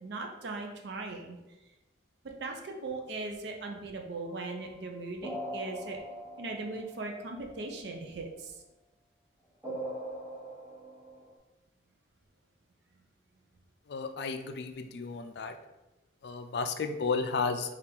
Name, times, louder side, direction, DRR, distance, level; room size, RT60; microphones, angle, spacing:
voice 1, 0.0-1.4 2.4-6.0 6.4-8.5, right 3 dB, 60° right, 3 dB, 0.5 m, -39 dB
sound 1, 4.2-7.5 9.6-11.4, right 1 dB, 15° right, 0.8 m, -41 dB
voice 2, 13.9-15.5 16.2-17.7, left 4 dB, 60° left, 8 dB, 0.3 m, -33 dB
4.4 x 2.4 x 3.5 m, 1.0 s
head